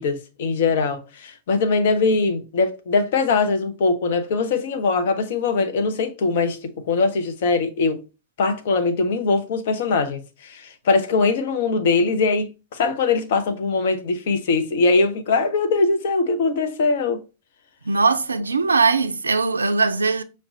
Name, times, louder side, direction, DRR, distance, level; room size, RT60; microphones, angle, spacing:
voice 1, 0.0-8.0 8.4-17.2, left 4 dB, 55° left, 0.6 m, -21 dB
voice 2, 17.9-20.2, right 4 dB, 75° right, 0.3 m, -20 dB
5.8 x 2.1 x 2.6 m
figure-of-eight pair, 90°, 0 cm